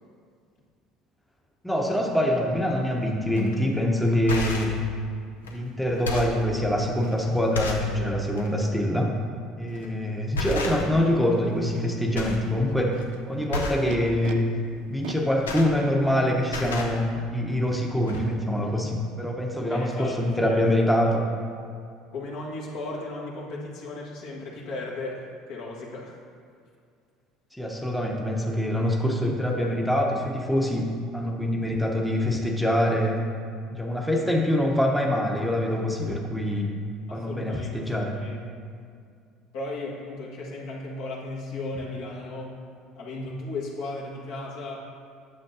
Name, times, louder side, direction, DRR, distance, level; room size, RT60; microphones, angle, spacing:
voice 1, 1.6-4.8 5.5-9.1 9.6-13.0 13.3-14.5 14.9-21.3 27.5-33.3 33.7-36.7 37.1-38.2, left 1 dB, ahead, 0 dB, 0.8 m, -25 dB
sound 1, 3.4-3.5 4.1-4.8 5.4-5.6 5.9-6.4 7.0-7.1 7.5-7.9 8.3-8.5 9.7-9.9 10.3-11.1 11.4-11.9 12.1-12.5 12.8-13.0 13.5-13.9 15.1-16.2 16.4-17.0 17.7-17.8 18.1-18.2, left 2 dB, 85° left, 0.6 m, -31 dB
Animal, 10.5-10.6 11.3-11.8 12.7-14.3 15.0-16.3, right 9 dB, 70° right, 0.4 m, -40 dB
voice 2, 19.7-20.6 22.1-26.2 37.1-38.4 39.5-42.6 42.9-44.8, left 2 dB, 65° left, -4 dB, 1.4 m, -36 dB
8.9 x 6.7 x 2.7 m, 2.3 s
hypercardioid pair, 65°, 0 cm